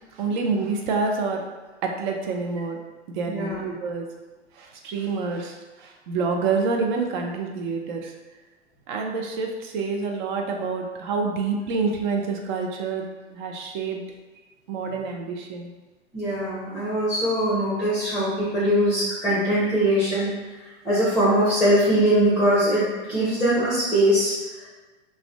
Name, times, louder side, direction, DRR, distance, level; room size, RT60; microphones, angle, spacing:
voice 1, 0.1-1.4 1.8-2.8 3.1-4.0 4.6-8.1 8.9-14.0 14.7-15.7, right 4 dB, 45° right, 2 dB, 0.5 m, -27 dB
voice 2, 3.3-3.6 16.1-20.3 20.6-24.7, equal, ahead, -10 dB, 0.7 m, -22 dB
2.4 x 2.1 x 3.4 m, 1.2 s
hypercardioid pair, 110°, 36 cm